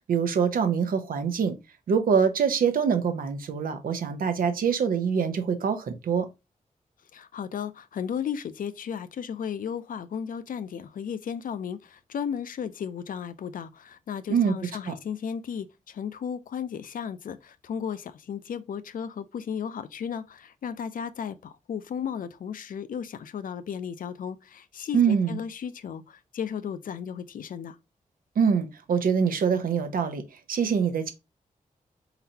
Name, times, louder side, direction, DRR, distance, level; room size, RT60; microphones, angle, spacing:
voice 1, 0.1-1.6 1.9-6.3 14.3-14.5 14.9-15.0 24.9-25.4 28.4-31.1, right 6 dB, 90° right, 0.7 m, -24 dB
voice 2, 7.1-27.8, left 7 dB, 75° left, 0.5 m, -34 dB
4.4 x 3.9 x 2.7 m
wide cardioid pair, 95°, 14 cm